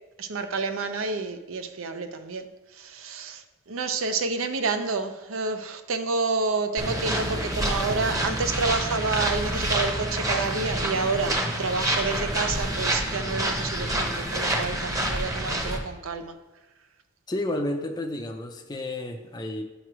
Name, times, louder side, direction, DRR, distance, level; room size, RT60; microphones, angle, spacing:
voice 1, 0.2-2.5 2.7-16.4, right 4 dB, 75° right, 9 dB, 0.6 m, -29 dB
sound 1, 6.8-15.8, right 1 dB, 15° right, 0.9 m, -27 dB
voice 2, 17.3-19.6, left 1 dB, 20° left, 3 dB, 0.5 m, -31 dB
9.1 x 3.1 x 6.0 m, 1.2 s
head